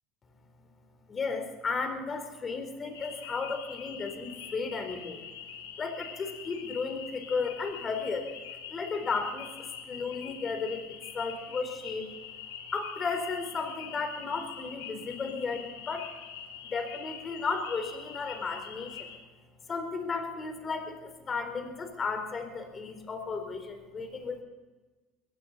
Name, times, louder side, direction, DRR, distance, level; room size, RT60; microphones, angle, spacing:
voice 1, 1.1-5.3 5.8-8.3 8.7-12.1 12.7-16.1 16.6-19.1 19.7-24.4, left 4 dB, 30° left, 6 dB, 4.0 m, -34 dB
sound 1, 2.9-19.2, left 8 dB, 85° left, 2.4 m, -44 dB
21.5 x 16.0 x 4.1 m, 1.3 s
hypercardioid pair, 80°, 0 cm